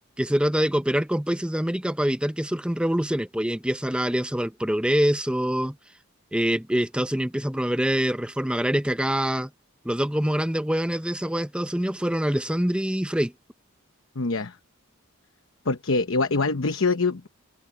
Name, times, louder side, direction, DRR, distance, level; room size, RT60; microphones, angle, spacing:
voice 1, 0.2-5.8 6.3-9.5 9.8-13.3, equal, 5° right, 0.7 m, -25 dB
voice 2, 14.1-14.6 15.6-17.3, left 3 dB, 65° left, 1.0 m, -24 dB
open air
head